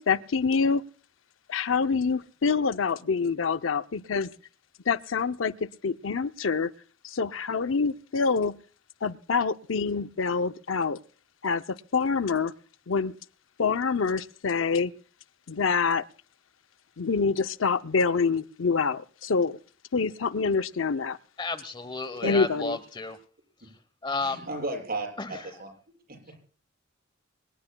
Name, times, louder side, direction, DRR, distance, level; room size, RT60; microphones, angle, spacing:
voice 1, 0.1-0.8 1.5-4.3 4.9-6.7 7.0-8.6 9.0-11.0 11.4-12.5 12.9-13.1 13.6-14.9 15.5-16.0 17.0-19.6 19.9-21.2 22.2-22.8, left 5 dB, 85° left, 0.6 m, -26 dB
voice 2, 21.4-23.2 24.0-24.5 25.2-25.3, left 3 dB, 25° left, 1.1 m, -32 dB
voice 3, 24.2-26.2, right 2 dB, 50° right, 6.6 m, -35 dB
25.0 x 19.5 x 2.3 m
head